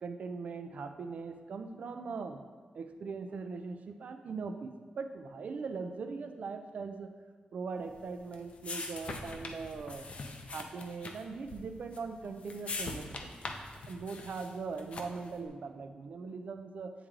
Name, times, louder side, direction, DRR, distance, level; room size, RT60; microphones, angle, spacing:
voice 1, 0.0-2.4 2.7-7.1 7.5-10.1 10.5-13.3 13.9-16.9, right 4 dB, 60° right, 8 dB, 0.4 m, -40 dB
sound 1, 7.9-15.3, left 3 dB, 45° left, 0.6 m, -43 dB
8.9 x 3.2 x 3.7 m, 1.5 s
wide cardioid pair, 160°, 3 cm